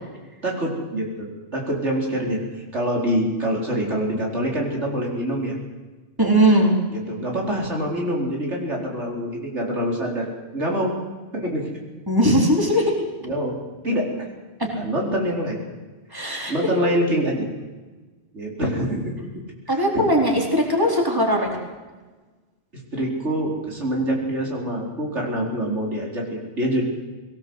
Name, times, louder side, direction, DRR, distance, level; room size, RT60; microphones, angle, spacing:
voice 1, 0.4-5.5 6.9-10.3 10.5-10.9 11.3-11.7 13.2-13.6 13.8-14.3 14.8-15.6 16.5-17.5 18.3-19.1 19.7-20.1 22.7-26.8, right 1 dB, 85° right, -1 dB, 4.8 m, -25 dB
voice 2, 6.2-6.7 12.1-12.9 16.1-16.5 16.8-17.0 19.7-21.5, equal, 20° right, 0 dB, 4.2 m, -19 dB
21.5 x 18.0 x 8.0 m, 1.3 s
omnidirectional pair, 1.2 m